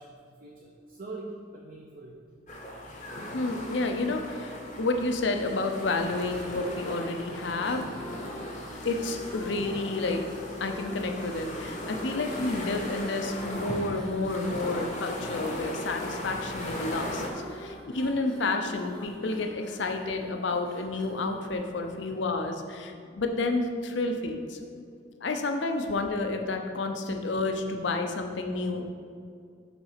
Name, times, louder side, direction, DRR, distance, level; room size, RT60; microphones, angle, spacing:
voice 1, 0.0-2.2, right 2 dB, 45° right, -2 dB, 0.6 m, -43 dB
sound 1, 2.5-17.3, left 1 dB, 40° left, 0.8 m, -38 dB
voice 2, 3.3-7.9 8.8-10.2 10.6-17.2 17.5-24.6 25.2-28.9, left 2 dB, 70° left, 5 dB, 0.6 m, -30 dB
sound 2, 5.9-22.3, equal, 5° left, 0.8 m, -45 dB
6.0 x 4.1 x 5.6 m, 2.2 s
head